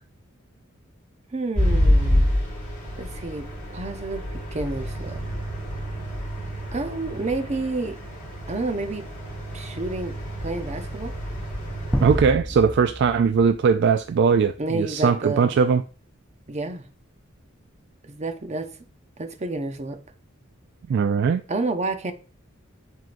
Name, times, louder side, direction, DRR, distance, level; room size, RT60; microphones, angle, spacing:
voice 1, 1.3-2.3 3.0-3.5 3.7-5.2 6.7-8.0 8.5-9.1 9.5-10.1 10.4-11.1 14.6-15.6 16.5-16.8 18.0-18.7 19.2-20.0 21.5-22.1, right 2 dB, 35° right, 0.7 m, -29 dB
sound 1, 1.5-12.2, equal, 40° left, 3.4 m, -27 dB
sound 2, 11.9-14.5, equal, 5° right, 0.6 m, -30 dB
voice 2, 12.0-15.8 20.9-21.4, right 6 dB, 55° right, 0.3 m, -20 dB
10.5 x 3.7 x 2.5 m
head